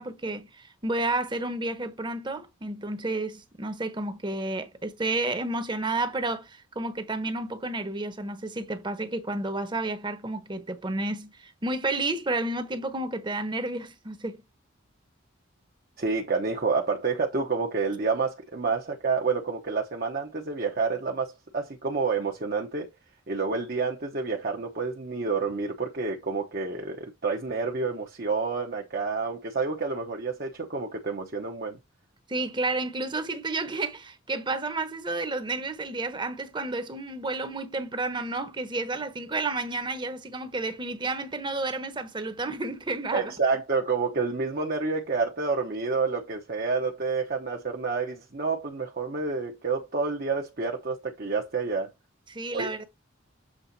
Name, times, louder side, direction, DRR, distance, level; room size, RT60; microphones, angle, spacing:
voice 1, 0.0-14.4 32.3-43.3 52.3-52.8, right 2 dB, 25° right, 1.1 m, -31 dB
voice 2, 16.0-22.9 23.3-31.8 43.1-51.9 52.5-52.8, right 4 dB, 45° right, 1.0 m, -29 dB
7.6 x 3.9 x 4.1 m
head